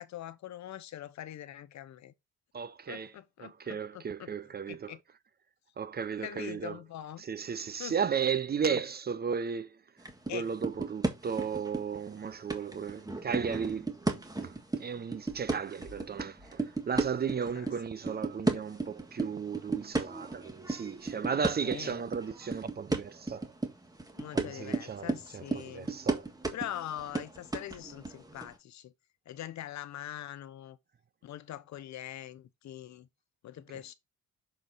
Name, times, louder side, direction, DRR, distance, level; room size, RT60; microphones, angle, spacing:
voice 1, 0.0-2.1 2.9-4.3 4.7-5.0 6.2-7.2 7.8-7.9 8.7-8.8 10.3-10.5 17.5-17.7 21.6-22.0 24.1-25.9 26.5-28.9 29.3-30.8 31.2-33.1 33.4-33.9, left 12 dB, 65° left, 0.8 m, -43 dB
voice 2, 2.5-3.1 3.4-4.9 5.8-6.8 7.2-9.8 10.3-23.5 24.3-26.3, right 6 dB, 35° right, 0.6 m, -35 dB
sound 1, 10.0-10.3 10.6-12.1 12.5-17.7 18.1-28.5, right 2 dB, 10° right, 1.6 m, -34 dB
6.5 x 4.5 x 3.8 m
cardioid pair, 90°, 30 cm